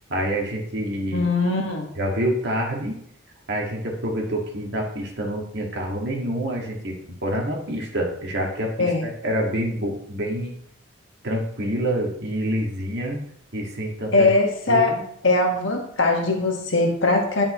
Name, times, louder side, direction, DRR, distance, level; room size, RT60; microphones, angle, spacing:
voice 1, 0.1-1.3 2.0-3.0 3.5-10.5 11.2-13.2 13.5-14.3 14.7-15.0, right 1 dB, 60° right, 0 dB, 1.8 m, -27 dB
voice 2, 1.1-1.9 8.8-9.1 14.1-14.9 15.2-17.4, left 2 dB, 70° left, 1 dB, 1.5 m, -20 dB
10.5 x 5.4 x 3.0 m, 0.69 s
head